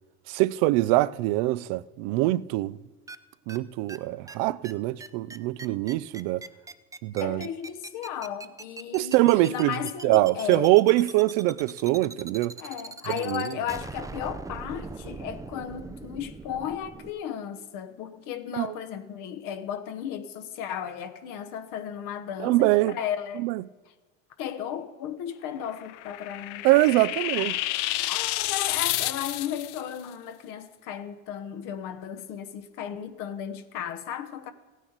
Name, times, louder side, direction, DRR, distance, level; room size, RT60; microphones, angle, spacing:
voice 1, 0.3-2.8 3.5-6.4 7.0-7.5 8.9-9.7 10.0-12.6 13.1-13.5 18.5-18.7 22.4-23.0 23.4-23.6 26.6-27.6, right 18 dB, 65° right, 0.5 m, -23 dB
sound 1, 3.1-3.2 3.5-3.6 3.9-4.0 4.3-4.4 4.6-4.7 5.0-17.1, right 3 dB, 10° right, 0.5 m, -41 dB
voice 2, 7.2-10.7 12.6-23.5 24.4-26.7 27.3-27.5 28.1-34.5, left 9 dB, 65° left, 1.1 m, -35 dB
sound 2, 25.6-29.8, left 17 dB, 80° left, 0.5 m, -30 dB
16.0 x 9.3 x 4.0 m
hypercardioid pair, 80°, 35 cm